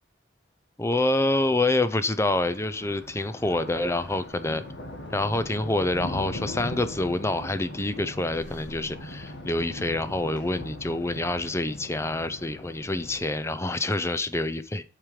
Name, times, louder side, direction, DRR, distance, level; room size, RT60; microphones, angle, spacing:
voice 1, 0.8-4.6 5.1-14.8, left 2 dB, 15° left, 13 dB, 0.5 m, -27 dB
Thunder, 2.1-13.2, left 1 dB, 65° left, 1.6 m, -40 dB
11.0 x 5.0 x 4.9 m, 0.37 s
head